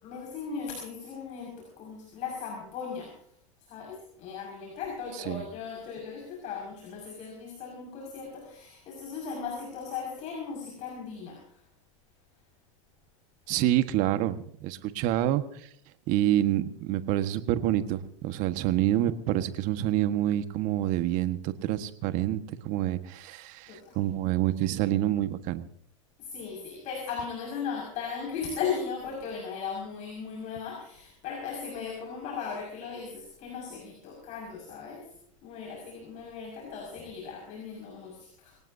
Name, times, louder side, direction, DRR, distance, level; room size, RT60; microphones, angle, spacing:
voice 1, 0.0-3.3 3.6-11.7 23.7-24.0 26.2-35.2 35.4-38.6, left 6 dB, 45° left, 0 dB, 5.9 m, -37 dB
voice 2, 13.5-15.7 16.1-25.6, right 13 dB, 50° right, 10 dB, 1.5 m, -27 dB
25.0 x 18.0 x 2.8 m, 0.65 s
hypercardioid pair, 105°, 17 cm